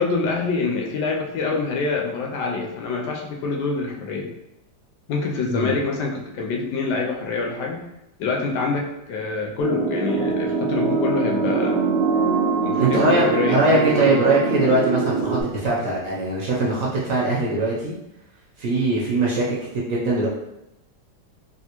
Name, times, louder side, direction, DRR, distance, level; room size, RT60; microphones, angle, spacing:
voice 1, 0.0-4.3 5.1-7.8 8.2-11.8 12.6-14.1, left 4 dB, 75° left, 0 dB, 1.1 m, -25 dB
sound 1, 9.6-15.4, right 4 dB, 90° right, 0.6 m, -23 dB
voice 2, 12.8-18.0 18.6-20.3, right 2 dB, 60° right, -4 dB, 0.9 m, -21 dB
3.4 x 2.4 x 2.9 m, 0.88 s
omnidirectional pair, 1.8 m